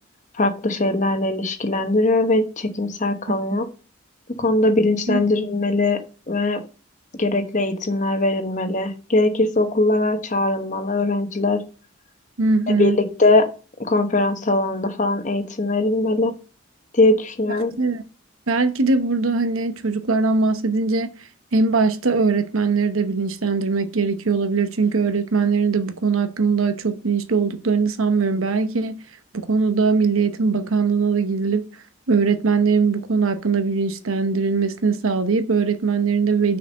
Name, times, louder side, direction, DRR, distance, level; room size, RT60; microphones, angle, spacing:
voice 1, 0.4-3.7 4.4-6.0 6.3-6.6 7.2-11.6 12.7-13.5 13.9-16.3 16.9-17.7, left 2 dB, 35° left, 1.0 m, -21 dB
voice 2, 12.4-13.0 17.8-18.0 18.5-21.1 21.5-29.0 29.3-31.7 32.1-36.6, right 4 dB, 85° right, 1.0 m, -21 dB
6.6 x 4.7 x 6.4 m
head